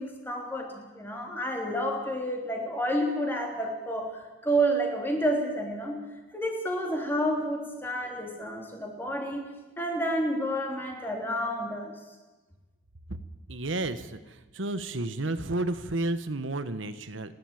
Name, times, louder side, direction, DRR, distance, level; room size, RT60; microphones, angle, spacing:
voice 1, 0.0-11.9, right 1 dB, 10° left, 2 dB, 3.3 m, -30 dB
voice 2, 13.5-17.3, right 2 dB, 80° right, 11 dB, 1.2 m, -32 dB
30.0 x 11.0 x 9.1 m, 1.2 s
head